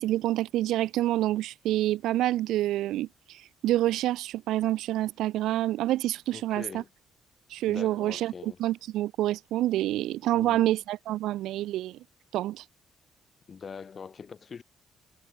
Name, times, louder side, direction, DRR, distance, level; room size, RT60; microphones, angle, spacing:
voice 1, 0.0-6.8 7.5-12.0 12.3-12.6, right 14 dB, 85° right, 0.4 m, -27 dB
voice 2, 6.3-6.9 7.7-8.6 10.3-10.8 13.5-14.6, left 6 dB, 45° left, 4.0 m, -43 dB
cardioid pair, 90°, 0 cm